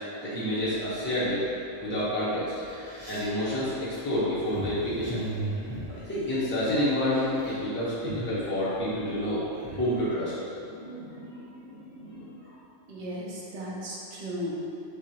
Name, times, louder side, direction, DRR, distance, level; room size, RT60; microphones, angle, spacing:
voice 1, 0.2-1.5 1.8-2.6 3.1-5.2 5.9-9.4 9.7-10.3 10.7-12.4, left 1 dB, 10° left, -11 dB, 0.9 m, -29 dB
sound 1, 0.6-1.2 2.0-2.1 2.5-6.7 7.0-7.6 7.9-10.0, right 2 dB, 20° right, 0.5 m, -38 dB
voice 2, 12.9-14.5, equal, 65° right, -5 dB, 1.1 m, -35 dB
6.1 x 2.5 x 2.9 m, 2.7 s
omnidirectional pair, 1.3 m